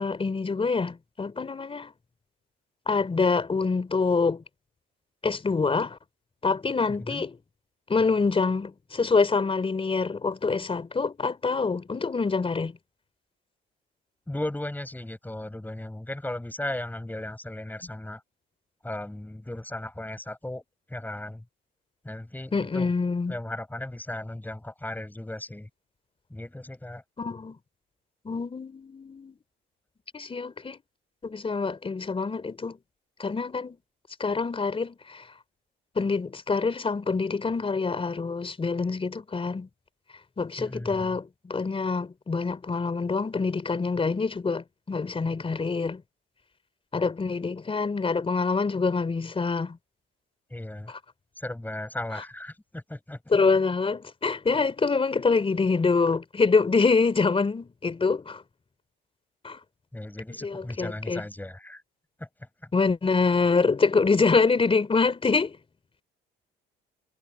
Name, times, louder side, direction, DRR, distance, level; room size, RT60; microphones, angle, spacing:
voice 1, 0.0-1.9 2.9-4.4 5.2-6.0 6.4-7.4 7.9-12.8 22.5-23.3 27.2-27.6 28.2-29.4 30.1-30.8 31.2-32.8 33.2-33.8 34.2-35.2 35.9-39.7 40.4-46.0 46.9-49.8 50.9-51.0 53.3-58.4 59.4-59.6 60.4-61.2 62.7-65.6, left 4 dB, 25° left, 3.4 m, -25 dB
voice 2, 6.9-7.2 14.3-18.2 18.8-20.6 20.9-21.4 22.0-22.9 23.3-25.7 26.3-27.0 40.6-41.2 50.5-50.9 51.4-53.4 59.9-61.8 62.2-62.3, left 1 dB, 10° left, 7.9 m, -36 dB
supercardioid pair, 75°, 21 cm